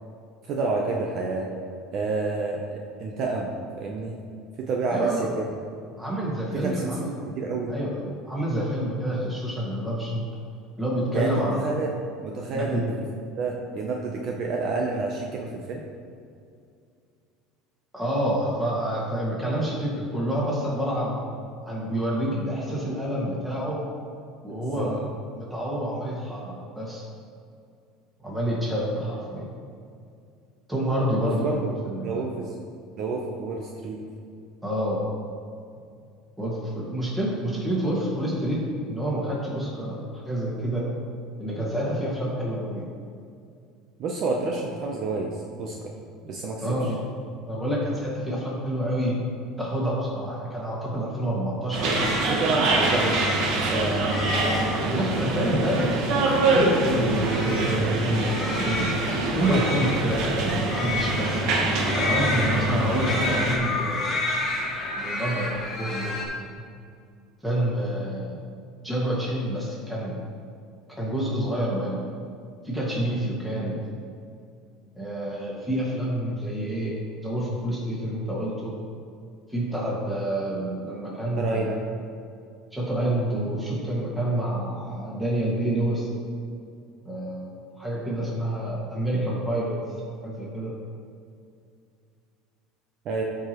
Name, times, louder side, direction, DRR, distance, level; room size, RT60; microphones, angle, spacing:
voice 1, 0.4-1.5 1.9-4.2 4.6-5.3 6.5-7.7 11.1-11.9 12.2-12.9 13.4-15.8 24.5-25.0 31.2-31.7 32.0-32.5 33.0-34.0 44.0-45.7 46.2-46.9 52.3-54.1 81.4-81.8 93.0-93.2, right 3 dB, 40° right, 0 dB, 0.7 m, -29 dB
voice 2, 4.9-5.3 6.0-7.1 7.7-10.2 10.8-11.6 12.5-12.8 17.9-21.2 21.6-23.8 24.4-25.0 25.3-27.0 28.2-29.4 30.7-31.6 31.9-32.2 34.6-35.0 36.4-38.6 38.9-40.9 41.4-42.9 46.6-47.0 47.5-49.1 49.6-51.9 54.8-56.0 56.5-58.9 59.3-61.4 61.9-64.2 65.0-65.5 65.8-66.1 67.4-68.4 68.8-70.2 71.0-72.0 72.6-73.9 75.0-78.7 79.5-81.7 82.7-86.1 87.1-87.5 87.8-89.7 90.2-90.7, right 1 dB, 5° right, -6 dB, 1.8 m, -28 dB
sound 1, 51.7-63.6, right 2 dB, 55° right, 1.1 m, -25 dB
sound 2, 51.8-66.3, left 2 dB, 25° left, 1.7 m, -31 dB
12.5 x 4.7 x 3.1 m, 2.4 s
cardioid pair, 165°, 0 cm